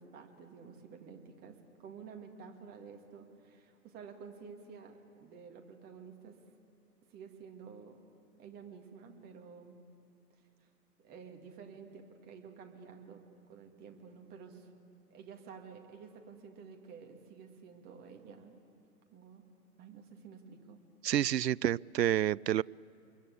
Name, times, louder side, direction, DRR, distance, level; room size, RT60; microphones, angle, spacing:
voice 1, 0.0-6.4 7.1-8.0 8.4-9.7 11.0-13.2 13.5-14.7 15.1-18.6 19.1-19.4 19.8-20.8, right 6 dB, 20° right, 3 dB, 2.1 m, -51 dB
voice 2, 21.0-22.6, right 11 dB, 85° right, 25 dB, 0.5 m, -29 dB
26.5 x 22.5 x 8.4 m, 2.5 s
hypercardioid pair, 140°, 48 cm